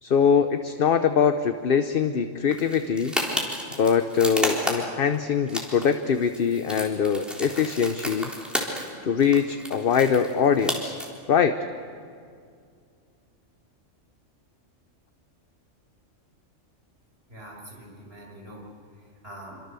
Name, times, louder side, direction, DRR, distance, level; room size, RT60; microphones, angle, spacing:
voice 1, 0.0-3.1 3.8-8.3 9.0-11.0 11.3-11.6, left 7 dB, 50° left, 8 dB, 1.0 m, -22 dB
sound 1, 2.5-5.1 5.5-8.9 9.2-11.0, equal, ahead, 3.7 m, -32 dB
voice 2, 17.3-18.6 18.9-19.6, right 1 dB, 50° right, -2 dB, 6.2 m, -44 dB
27.0 x 25.5 x 6.9 m, 2.2 s
omnidirectional pair, 1.3 m